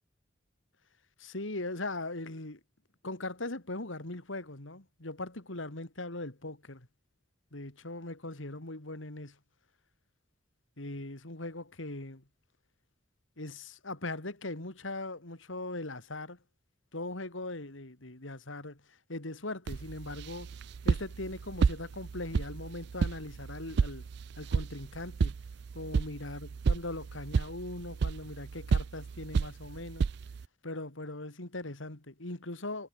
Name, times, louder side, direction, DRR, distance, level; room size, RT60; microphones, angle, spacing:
voice 1, 1.2-2.6 3.0-6.9 7.5-9.4 10.8-12.2 13.4-16.4 16.9-20.5 20.8-24.1 24.3-25.4 25.7-30.1 30.6-32.9, left 2 dB, 90° left, 3.0 m, -40 dB
sound 1, 19.7-30.5, right 5 dB, 60° right, 0.4 m, -32 dB
head